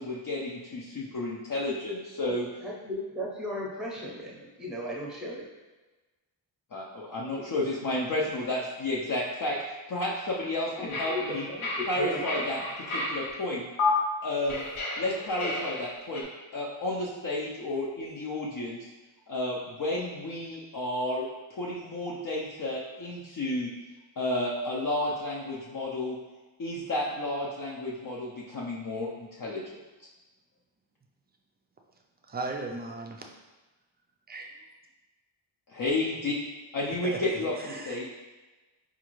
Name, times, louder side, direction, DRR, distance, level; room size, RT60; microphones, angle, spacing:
voice 1, 0.0-2.5 6.7-9.6 9.9-11.5 11.9-12.6 12.9-13.7 14.2-14.6 15.0-16.3 16.5-18.9 19.3-23.7 24.2-26.2 26.6-29.6 35.7-36.3 36.7-38.0, left 1 dB, 45° left, -5 dB, 0.5 m, -31 dB
voice 2, 2.6-5.5 10.8-12.5, left 1 dB, ahead, -4 dB, 0.7 m, -36 dB
sound 1, 10.9-13.3 13.8-13.9 14.5-16.2, left 2 dB, 90° left, 1.0 m, -32 dB
voice 3, 32.3-33.2 34.3-34.5 37.0-38.0, right 3 dB, 25° right, 2 dB, 0.3 m, -37 dB
4.9 x 2.4 x 3.0 m, 1.2 s
wide cardioid pair, 140°, 48 cm